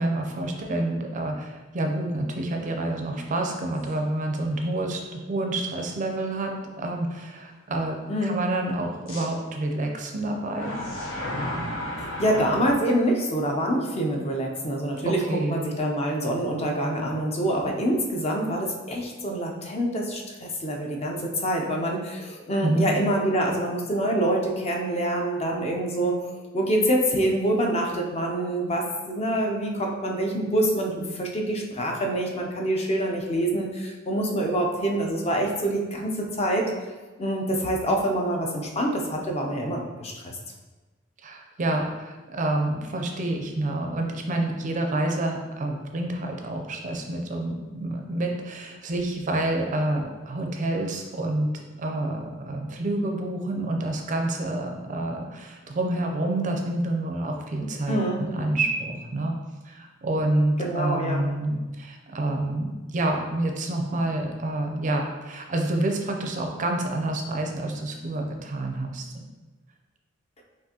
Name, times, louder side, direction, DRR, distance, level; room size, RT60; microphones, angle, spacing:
voice 1, 0.0-10.8 15.0-15.6 22.6-23.0 41.2-51.5 51.8-59.3 59.6-69.3, right 2 dB, 40° right, 2 dB, 0.5 m, -28 dB
sound 1, 3.8-3.9 4.5-4.6 9.1-9.2 10.5-12.7, left 1 dB, 70° left, 1.0 m, -32 dB
voice 2, 8.1-8.4 12.0-15.2 15.5-26.2 26.5-36.6 37.2-40.4 57.9-58.2 60.6-61.3, right 1 dB, 30° left, 0 dB, 0.5 m, -26 dB
5.9 x 2.5 x 2.8 m, 1.2 s
head